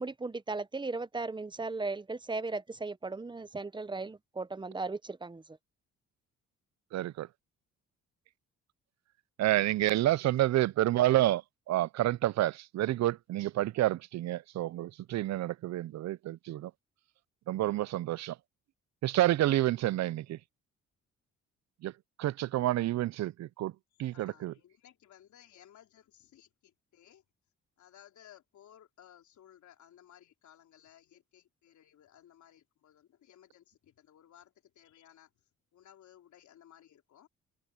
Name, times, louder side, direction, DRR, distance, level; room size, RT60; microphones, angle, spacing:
voice 1, 0.0-5.4, right 3 dB, 15° right, 0.9 m, -36 dB
voice 2, 6.9-7.3 9.4-11.4 11.7-16.7 17.5-18.4 19.0-20.4 21.8-21.9 22.2-24.5, right 14 dB, 65° right, 0.5 m, -29 dB
voice 3, 24.1-27.2 27.8-34.5 34.8-35.3 35.7-37.3, left 10 dB, 70° left, 4.0 m, -59 dB
open air
cardioid pair, 90°, 30 cm